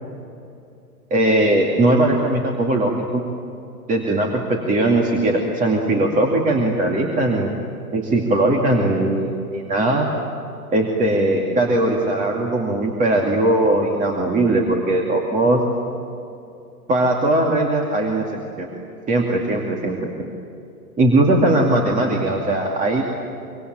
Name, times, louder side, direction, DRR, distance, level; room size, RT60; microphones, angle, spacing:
voice 1, 1.1-3.2 3.9-7.5 7.9-10.1 10.7-15.6 16.9-18.3 18.6-18.7 19.1-20.3 21.0-23.0, right 1 dB, 15° right, 1 dB, 2.4 m, -19 dB
25.5 x 25.0 x 9.1 m, 2.6 s
figure-of-eight pair, 105°, 45 cm